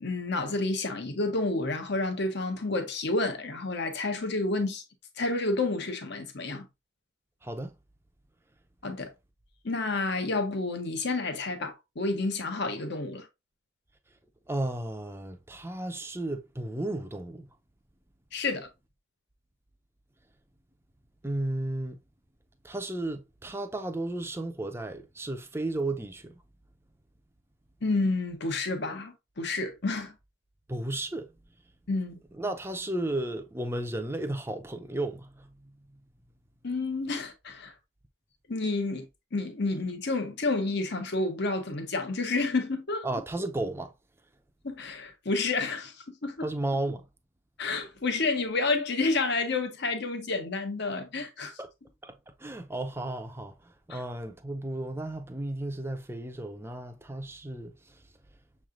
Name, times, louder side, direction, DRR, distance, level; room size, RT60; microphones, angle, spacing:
voice 1, 0.0-4.8 5.2-6.7 8.8-9.1 9.6-13.3 18.3-18.7 27.8-30.1 31.9-32.2 36.6-37.7 38.5-39.1 39.3-43.1 44.6-46.5 47.6-51.6 53.9-54.0, left 3 dB, 60° left, 1.0 m, -30 dB
voice 2, 7.4-7.7 14.5-17.5 21.2-22.0 22.6-26.3 30.7-31.3 32.4-35.5 43.0-43.9 46.4-47.0 51.6-51.7 52.0-57.7, right 1 dB, 15° right, 0.6 m, -34 dB
6.6 x 3.2 x 2.5 m
head